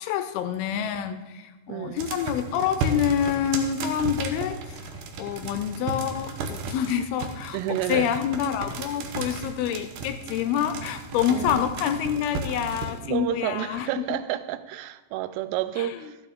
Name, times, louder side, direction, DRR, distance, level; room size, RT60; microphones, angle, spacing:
voice 1, 0.0-14.2 15.8-16.1, left 9 dB, 80° left, 2.4 m, -27 dB
voice 2, 1.7-2.1 7.5-8.1 11.3-11.7 12.3-12.7 13.0-16.2, right 12 dB, 90° right, 2.7 m, -30 dB
sound 1, 2.0-13.0, right 3 dB, 75° right, 2.0 m, -34 dB
13.0 x 9.0 x 3.6 m
omnidirectional pair, 4.8 m